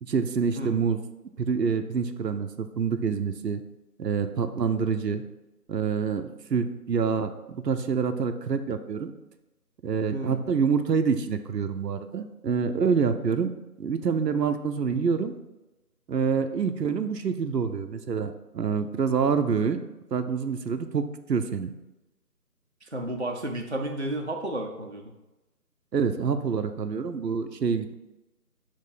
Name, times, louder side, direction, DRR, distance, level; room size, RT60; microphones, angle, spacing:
voice 1, 0.0-1.0 1.4-3.6 4.0-5.2 5.7-9.1 9.8-13.5 13.8-15.3 16.1-19.8 20.1-21.0 21.3-21.7 25.9-27.9, right 6 dB, 80° right, 8 dB, 0.7 m, -26 dB
voice 2, 10.1-10.4 16.8-16.9 22.8-25.1, right 1 dB, 45° right, 1 dB, 0.5 m, -32 dB
6.6 x 3.1 x 5.3 m, 1.0 s
figure-of-eight pair, 180°, 48 cm